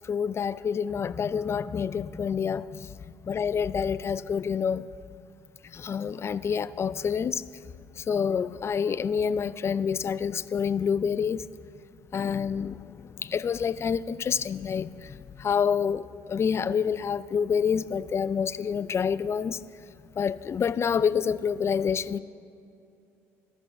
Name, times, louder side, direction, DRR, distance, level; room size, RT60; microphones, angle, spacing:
voice 1, 0.0-2.9 3.2-4.9 5.6-7.4 8.0-11.5 12.1-19.6 20.2-22.2, left 7 dB, 35° left, 0.3 m, -28 dB
13.5 x 6.0 x 6.5 m
hypercardioid pair, 65°, 8 cm